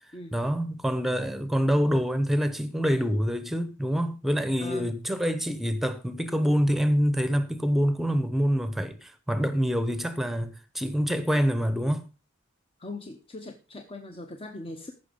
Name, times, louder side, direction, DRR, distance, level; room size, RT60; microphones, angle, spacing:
voice 1, 0.3-12.0, equal, ahead, 0.9 m, -26 dB
voice 2, 4.6-4.9 12.8-14.9, left 2 dB, 25° left, 0.8 m, -40 dB
14.5 x 6.0 x 5.1 m
head